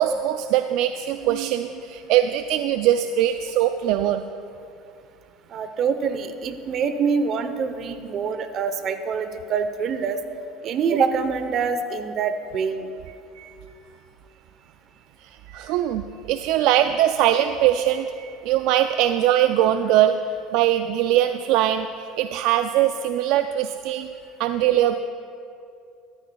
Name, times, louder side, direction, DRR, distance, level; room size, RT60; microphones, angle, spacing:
voice 1, 0.0-4.2 13.3-13.6 15.2-20.2 20.5-24.1 24.4-24.9, right 12 dB, 70° right, 9 dB, 0.3 m, -21 dB
voice 2, 5.5-10.2 10.6-12.9, right 5 dB, 50° right, 9 dB, 0.8 m, -25 dB
14.0 x 13.0 x 2.3 m, 2.6 s
supercardioid pair, 95°, 0 cm